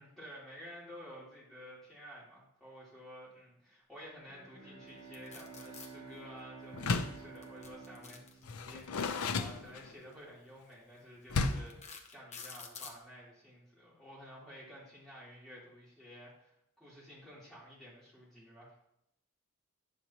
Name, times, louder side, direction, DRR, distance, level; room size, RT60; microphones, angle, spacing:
voice 1, 0.0-18.8, equal, ahead, -9 dB, 3.5 m, -52 dB
Bowed string instrument, 4.3-9.2, right 4 dB, 25° right, 3.5 m, -51 dB
sound 1, 5.1-5.9 7.4-8.8 9.9-10.1 10.7-10.8 11.4-13.0, left 5 dB, 30° left, 0.7 m, -49 dB
Door, 6.7-7.3 8.4-10.1 11.3-11.8, left 4 dB, 85° left, 0.6 m, -33 dB
9.4 x 6.8 x 2.9 m, 0.78 s
head